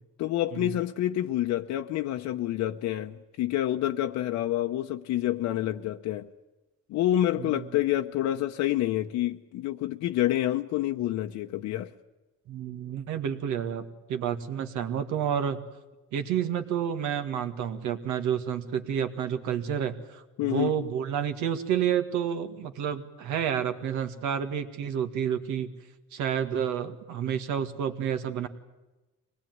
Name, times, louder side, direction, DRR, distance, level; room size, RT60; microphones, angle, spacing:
voice 1, 0.2-6.3 6.9-11.9 20.4-20.7, left 13 dB, 70° left, 4 dB, 0.9 m, -28 dB
voice 2, 12.5-15.6 16.1-25.7 26.1-28.5, right 8 dB, 85° right, 8 dB, 1.9 m, -30 dB
23.5 x 19.0 x 9.4 m, 1.1 s
cardioid pair, 125°, 29 cm